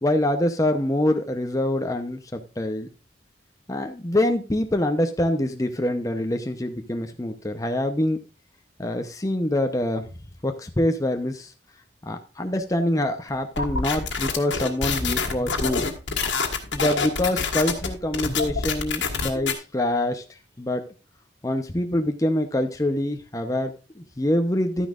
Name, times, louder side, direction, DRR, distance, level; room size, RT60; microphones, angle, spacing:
voice 1, 0.0-2.9 3.7-8.2 8.8-10.0 10.4-11.5 12.0-15.9 16.7-20.2 20.6-20.8 21.4-24.9, left 1 dB, 20° left, 5 dB, 0.8 m, -25 dB
sound 1, 13.6-19.5, left 4 dB, 85° left, 1.7 m, -26 dB
12.0 x 9.9 x 2.5 m, 0.32 s
head